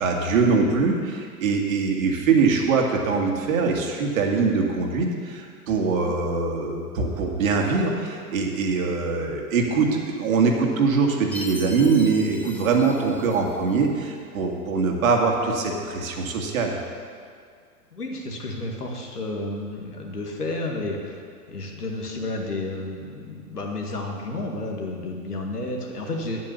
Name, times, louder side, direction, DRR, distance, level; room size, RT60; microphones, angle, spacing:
voice 1, 0.0-16.7, right 4 dB, 60° right, 1 dB, 2.1 m, -23 dB
Chime, 11.3-13.8, left 2 dB, 5° left, 0.5 m, -40 dB
voice 2, 17.9-26.5, left 2 dB, 80° left, 1 dB, 2.1 m, -31 dB
9.5 x 8.7 x 6.8 m, 2.1 s
figure-of-eight pair, 100°, 46 cm